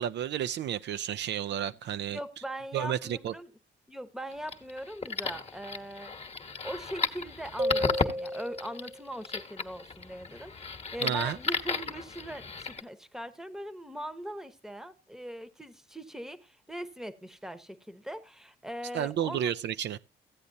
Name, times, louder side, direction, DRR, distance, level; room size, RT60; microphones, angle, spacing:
voice 1, 0.0-2.2 2.7-3.3 11.0-11.4 18.9-20.0, right 10 dB, 65° right, 0.4 m, -31 dB
voice 2, 2.1-3.5 3.9-6.2 6.6-19.5, equal, ahead, 0.9 m, -41 dB
sound 1, 4.3-12.8, left 5 dB, 30° left, 1.1 m, -34 dB
sound 2, 7.6-9.1, equal, 30° right, 1.0 m, -32 dB
14.5 x 8.4 x 2.7 m
cardioid pair, 90°, 20 cm